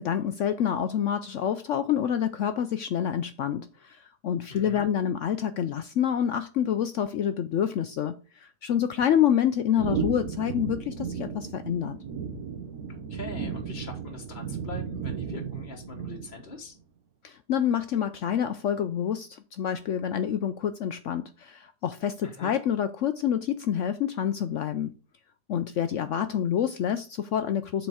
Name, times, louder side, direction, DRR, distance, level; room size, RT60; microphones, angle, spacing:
voice 1, 0.0-12.0 17.2-24.9 25.5-27.9, left 9 dB, 70° left, 0.7 m, -27 dB
voice 2, 4.5-4.9 13.1-16.7 22.2-22.6, left 3 dB, 35° left, 1.0 m, -42 dB
sound 1, 9.8-16.5, right 6 dB, 70° right, 1.4 m, -34 dB
7.7 x 4.1 x 4.8 m
omnidirectional pair, 1.7 m